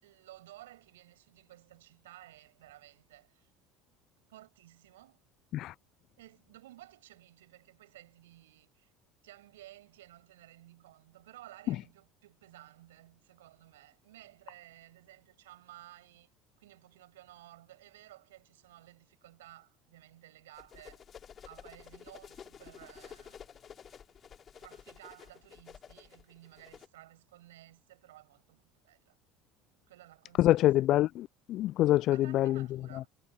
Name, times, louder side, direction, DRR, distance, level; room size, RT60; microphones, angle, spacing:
voice 1, 0.0-3.5 4.3-5.2 6.2-8.9 9.2-16.3 16.6-21.0 21.4-23.5 24.6-29.2 29.9-30.7 32.1-33.1, right 15 dB, 80° right, 7.6 m, -55 dB
sound 1, 20.6-26.9, left 8 dB, 40° left, 2.8 m, -52 dB
voice 2, 30.4-32.5, left 14 dB, 55° left, 0.3 m, -25 dB
hypercardioid pair, 70°, 0 cm